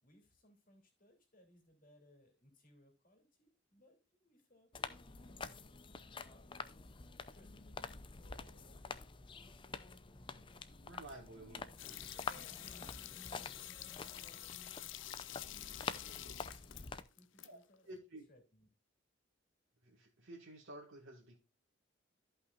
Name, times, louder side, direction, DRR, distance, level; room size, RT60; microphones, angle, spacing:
voice 1, 0.0-4.7 5.0-7.0 7.3-7.8 8.5-8.8 10.1-11.4 11.7-11.8 12.2-14.8 17.0-17.9 18.3-18.7, left 1 dB, 40° left, 3 dB, 2.8 m, -67 dB
sound 1, 4.7-17.0, left 4 dB, 25° left, 0.5 m, -47 dB
voice 2, 10.7-11.6 17.4-17.6 17.9-18.3 19.8-21.4, right 1 dB, 75° right, -3 dB, 1.9 m, -52 dB
sound 2, 11.8-17.5 17.7-17.8, left 13 dB, 70° left, 0.5 m, -49 dB
14.0 x 5.6 x 2.4 m, 0.29 s
head